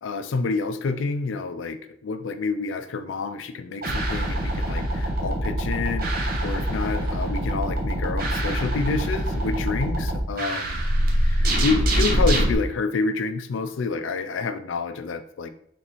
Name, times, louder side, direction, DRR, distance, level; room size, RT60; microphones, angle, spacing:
voice 1, 0.0-10.8 11.1-15.5, left 4 dB, 85° left, 9 dB, 0.4 m, -28 dB
sound 1, 3.8-12.5, right 1 dB, 50° right, 0.8 m, -24 dB
4.1 x 3.4 x 2.9 m, 0.70 s
head